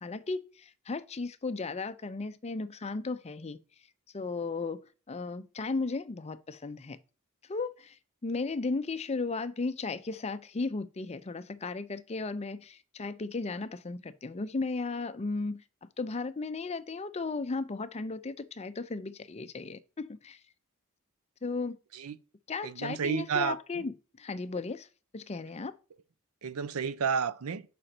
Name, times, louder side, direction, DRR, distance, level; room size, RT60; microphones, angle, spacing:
voice 1, 0.0-3.6 4.1-7.0 7.5-8.0 8.2-15.6 16.0-20.4 21.4-21.8 22.5-24.9 25.1-25.7, left 3 dB, 30° left, 0.5 m, -35 dB
voice 2, 22.6-23.6 26.4-27.6, right 6 dB, 70° right, 0.5 m, -31 dB
6.4 x 5.0 x 4.3 m
head